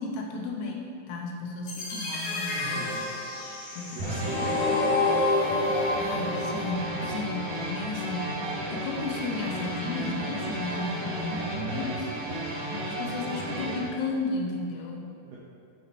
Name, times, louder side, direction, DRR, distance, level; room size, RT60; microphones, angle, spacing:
voice 1, 0.0-2.9 3.7-4.8 6.0-12.1 12.9-15.1, left 3 dB, 80° left, 1 dB, 2.6 m, -34 dB
sound 1, 1.7-7.7, left 2 dB, 65° left, 1.6 m, -29 dB
voice 2, 2.6-3.3 3.9-5.1 7.0-7.5 15.2-15.4, right 3 dB, 80° right, -5 dB, 1.9 m, -41 dB
sound 2, 4.0-13.8, right 1 dB, 60° right, 2.1 m, -33 dB
9.1 x 5.0 x 4.3 m, 2.4 s
omnidirectional pair, 5.1 m